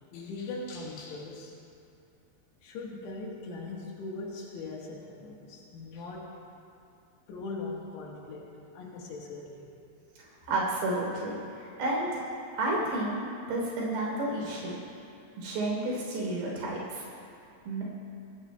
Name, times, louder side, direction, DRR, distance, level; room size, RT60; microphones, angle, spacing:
voice 1, 0.1-1.6 2.6-6.4 7.3-9.7, left 3 dB, 80° left, -3 dB, 3.6 m, -40 dB
voice 2, 10.2-12.2 12.5-13.2 13.5-14.8 15.4-17.1 17.6-17.8, right 2 dB, 70° right, -4 dB, 5.3 m, -31 dB
23.5 x 17.5 x 2.2 m, 2.5 s
omnidirectional pair, 4.9 m